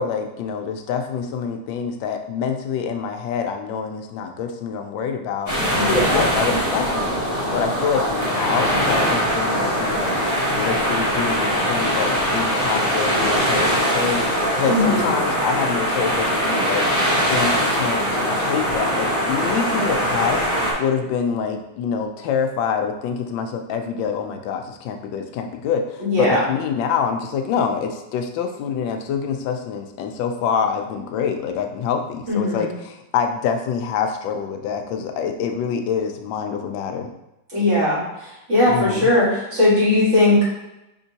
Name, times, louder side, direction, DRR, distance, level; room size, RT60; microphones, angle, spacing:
voice 1, 0.0-7.1 7.5-10.2 10.5-16.9 17.3-20.5 20.8-37.1 38.7-39.1, left 6 dB, 85° left, 5 dB, 1.3 m, -26 dB
sound 1, 5.5-20.7, equal, 20° left, 1.5 m, -21 dB
voice 2, 5.8-6.2 14.7-15.1 26.0-26.4 32.3-32.7 37.5-40.5, left 2 dB, 40° right, -7 dB, 1.8 m, -19 dB
5.1 x 3.7 x 2.8 m, 0.93 s
omnidirectional pair, 2.0 m